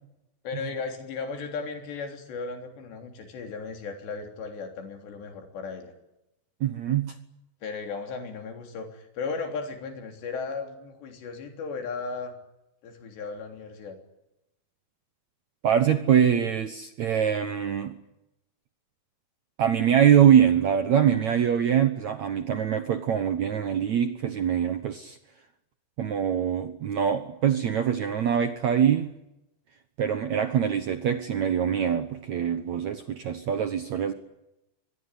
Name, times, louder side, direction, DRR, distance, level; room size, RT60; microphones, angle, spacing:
voice 1, 0.4-5.9 7.6-12.4 12.8-14.0, left 4 dB, 85° left, 4 dB, 5.6 m, -36 dB
voice 2, 6.6-7.1 15.6-18.0 19.6-25.2 26.0-29.1 30.0-34.1, right 9 dB, 65° right, 9 dB, 1.8 m, -23 dB
24.5 x 21.5 x 9.8 m, 0.90 s
omnidirectional pair, 4.8 m